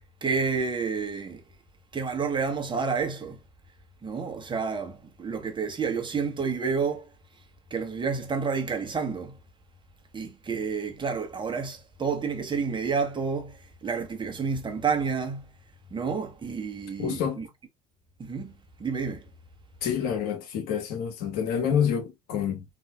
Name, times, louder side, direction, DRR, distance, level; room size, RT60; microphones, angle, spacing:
voice 1, 0.2-1.4 1.9-3.4 4.0-7.1 7.7-9.3 10.1-15.4 15.9-17.5 18.2-18.5 18.8-19.2, right 5 dB, 25° right, 1.3 m, -29 dB
voice 2, 17.0-17.4 19.8-22.6, left 8 dB, 65° left, 1.3 m, -27 dB
4.1 x 3.0 x 2.3 m
hypercardioid pair, 65°, 17 cm